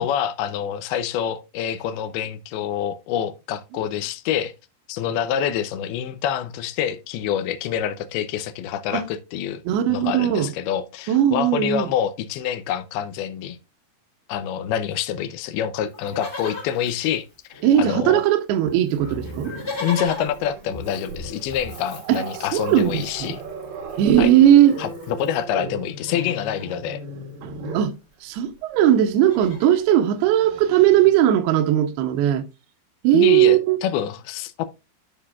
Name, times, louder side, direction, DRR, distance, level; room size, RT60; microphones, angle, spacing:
voice 1, 0.0-4.5 4.9-9.6 9.9-13.6 14.3-17.3 17.8-18.2 19.8-23.4 24.2-24.3 24.8-27.0 33.1-34.8, left 9 dB, 80° left, 2.6 m, -26 dB
voice 2, 9.7-10.5 11.1-11.9 17.6-19.5 22.1-22.2 22.5-23.4 24.0-24.8 27.4-27.9 28.2-32.4 33.0-33.8, right 11 dB, 85° right, 2.7 m, -18 dB
Livestock farm animals working animals, 15.9-17.9 18.2-18.3 18.5-25.4 25.9-26.8 28.0-28.1 28.3-28.6 28.9-29.9 30.5-30.6, left 3 dB, 55° left, 0.5 m, -39 dB
Growling, 18.9-28.0 29.3-29.5 29.9-31.1, right 2 dB, 65° right, 3.1 m, -37 dB
12.5 x 4.9 x 2.3 m
omnidirectional pair, 4.6 m